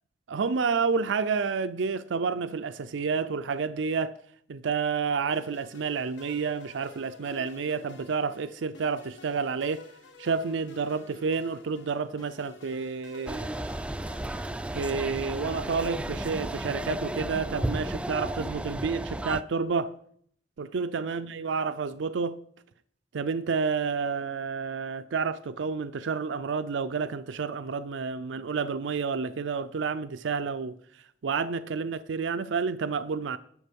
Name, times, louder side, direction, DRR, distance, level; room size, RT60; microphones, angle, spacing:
voice 1, 0.3-4.1 4.5-9.8 10.2-13.5 14.7-19.9 20.6-22.4 23.1-30.8 31.2-33.4, right 5 dB, 90° right, 0.5 m, -30 dB
sound 1, 5.3-16.0, left 2 dB, 75° left, 1.2 m, -51 dB
sound 2, 13.3-19.4, right 1 dB, 5° right, 0.3 m, -33 dB
11.0 x 6.9 x 5.2 m
head